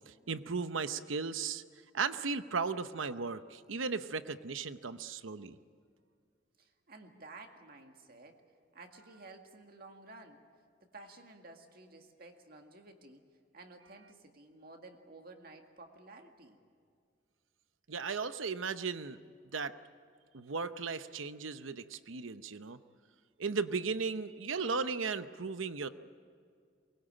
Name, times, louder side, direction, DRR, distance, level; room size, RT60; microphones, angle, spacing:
voice 1, 0.1-1.6 1.9-5.6 17.9-19.2 19.5-19.7 20.3-22.8 23.4-25.9, right 5 dB, 90° right, 12 dB, 0.9 m, -36 dB
voice 2, 6.6-8.4 8.7-10.4 10.8-13.2 13.5-16.6, right 2 dB, 50° right, 4 dB, 2.0 m, -53 dB
23.0 x 21.0 x 8.9 m, 2.2 s
head